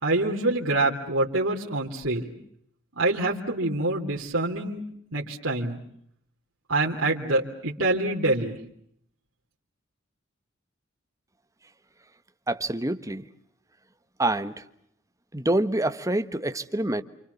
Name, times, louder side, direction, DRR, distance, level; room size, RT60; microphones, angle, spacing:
voice 1, 0.0-2.3 3.0-4.8 5.1-5.8 6.7-8.6, right 2 dB, 75° right, -3 dB, 3.4 m, -26 dB
voice 2, 12.5-13.3 14.2-14.5 15.3-17.0, right 1 dB, 15° right, 9 dB, 1.3 m, -26 dB
29.0 x 27.0 x 7.0 m, 0.70 s
head